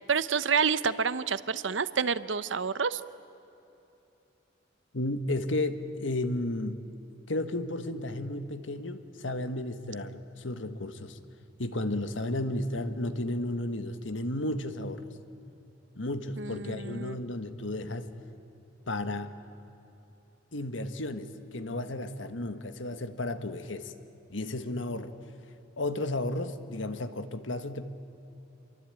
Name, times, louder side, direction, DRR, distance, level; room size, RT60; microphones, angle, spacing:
voice 1, 0.1-3.0 16.4-17.2, right 6 dB, 75° right, 15 dB, 0.8 m, -28 dB
voice 2, 4.9-6.8 7.3-11.2 11.6-15.0 15.9-18.1 18.9-19.3 20.5-23.9 24.3-25.1 25.8-27.9, left 1 dB, 90° left, 10 dB, 1.5 m, -33 dB
27.5 x 23.5 x 9.0 m, 3.0 s
head